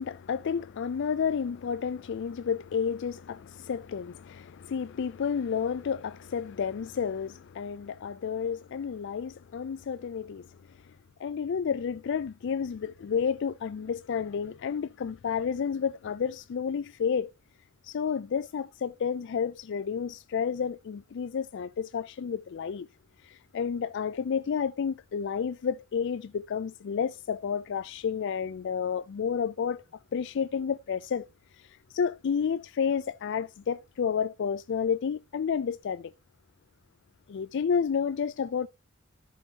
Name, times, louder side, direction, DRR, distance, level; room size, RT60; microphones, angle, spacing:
voice 1, 0.0-10.5 11.2-17.3 17.8-22.9 23.2-29.8 30.1-31.3 31.9-36.1 37.3-38.7, left 6 dB, 60° left, 0.4 m, -31 dB
13.0 x 6.3 x 2.8 m
head